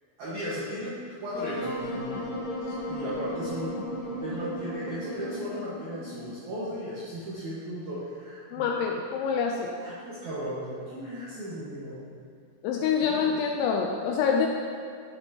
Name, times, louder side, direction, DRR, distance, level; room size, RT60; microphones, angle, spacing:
voice 1, 0.2-2.3 2.8-3.8 4.2-8.7 9.5-12.0 13.1-13.4, equal, 80° right, -10 dB, 1.7 m, -36 dB
Wind instrument woodwind instrument, 1.3-6.4, equal, 55° left, 3.5 m, -35 dB
voice 2, 8.5-9.8 12.6-14.5, left 6 dB, 85° left, 1 dB, 2.7 m, -26 dB
11.5 x 7.0 x 2.8 m, 2.3 s
omnidirectional pair, 5.6 m